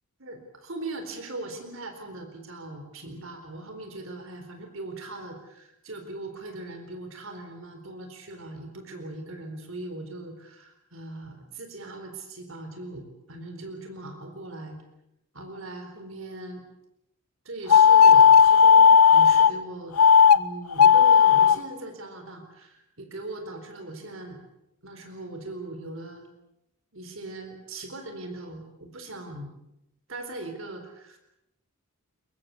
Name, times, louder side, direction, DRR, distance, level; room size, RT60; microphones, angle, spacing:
voice 1, 0.2-14.8 15.3-16.6 17.4-20.0 20.3-24.4 24.8-26.3 26.9-29.5 30.1-31.2, right 2 dB, 60° right, 5 dB, 4.1 m, -39 dB
sound 1, 17.7-19.5 20.0-20.4 20.7-21.6, left 7 dB, 85° left, 0.9 m, -14 dB
22.5 x 22.5 x 8.2 m, 0.83 s
head